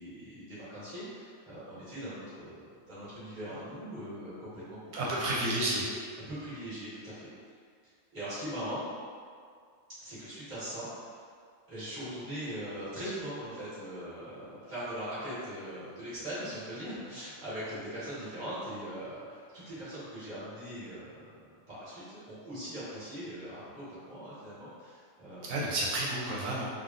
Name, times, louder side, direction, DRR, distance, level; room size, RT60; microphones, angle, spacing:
voice 1, 0.0-4.8 5.1-5.2 6.3-7.3 8.1-8.9 10.0-11.2 11.7-21.3 21.7-25.8, equal, 35° right, -12 dB, 1.4 m, -41 dB
voice 2, 4.9-5.8 25.5-26.7, right 1 dB, 90° right, -5 dB, 1.0 m, -31 dB
3.4 x 2.3 x 2.4 m, 2.1 s
omnidirectional pair, 1.4 m